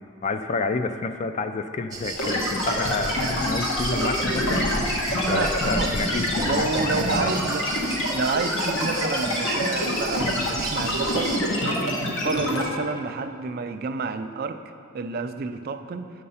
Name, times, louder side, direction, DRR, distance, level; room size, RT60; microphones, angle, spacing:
voice 1, 0.2-7.4, left 3 dB, 30° left, 8 dB, 0.3 m, -29 dB
sound 1, 1.9-11.4, right 3 dB, 15° right, 1.0 m, -33 dB
sound 2, 2.2-12.6, left 1 dB, 60° left, 1.5 m, -26 dB
voice 2, 5.2-5.9 6.4-7.7 8.1-11.4 11.6-14.6 14.9-16.1, right 4 dB, 45° right, 9 dB, 0.3 m, -29 dB
8.4 x 6.7 x 5.5 m, 2.6 s
head